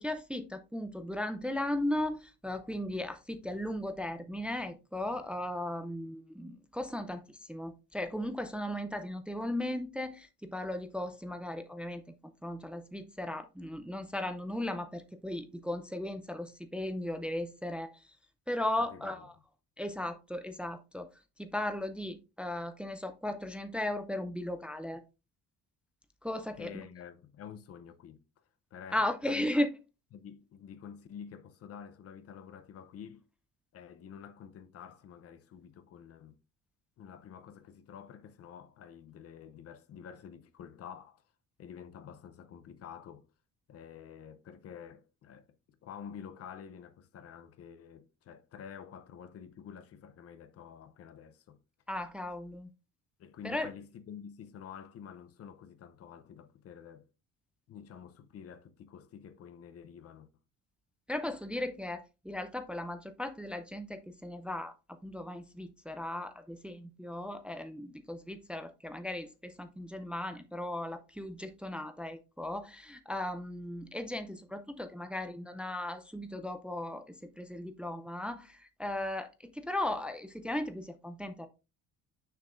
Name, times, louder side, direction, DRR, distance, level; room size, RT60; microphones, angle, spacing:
voice 1, 0.0-18.1 18.5-19.3 19.8-21.1 21.4-25.0 26.2-26.8 28.9-29.7 51.9-52.7 53.4-53.7 61.1-77.0 77.4-81.5, left 1 dB, 5° right, 0.4 m, -36 dB
voice 2, 18.8-19.3 26.6-28.2 28.7-29.5 30.1-33.2 33.7-36.4 37.0-41.2 41.6-43.3 43.7-51.6 52.5-52.6 53.2-57.1 57.7-60.3, left 8 dB, 45° left, 0.7 m, -49 dB
6.7 x 6.6 x 2.5 m
cardioid pair, 165°, 33 cm